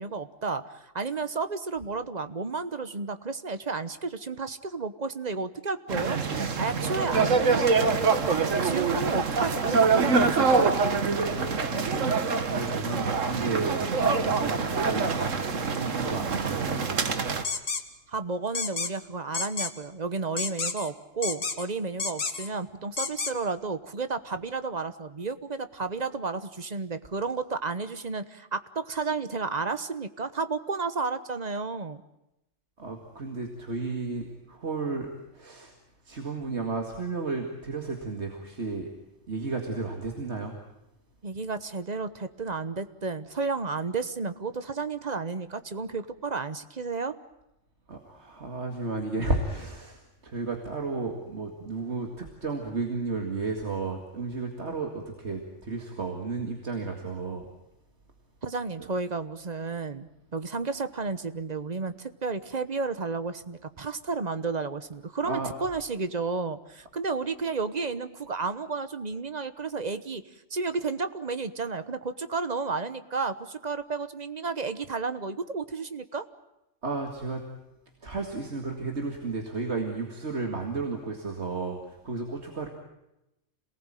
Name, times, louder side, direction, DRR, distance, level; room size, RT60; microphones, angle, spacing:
voice 1, 0.0-10.8 18.1-32.0 41.2-47.2 58.4-70.2 70.5-76.2, right 4 dB, 35° right, 11 dB, 1.1 m, -32 dB
sound 1, 5.9-17.4, right 4 dB, 90° right, 1.8 m, -25 dB
voice 2, 11.2-17.1 32.8-35.7 36.1-38.9 39.3-40.6 47.9-57.5 58.8-58.9 65.2-65.5 76.8-77.4 78.0-82.7, right 3 dB, 65° right, 3 dB, 2.4 m, -33 dB
sound 2, 17.4-17.8 18.5-18.9 19.3-19.7 20.4-20.9 21.2-21.6 22.0-22.5 23.0-23.3, left 4 dB, 55° left, 1.7 m, -30 dB
27.0 x 19.0 x 9.0 m, 0.90 s
omnidirectional pair, 1.3 m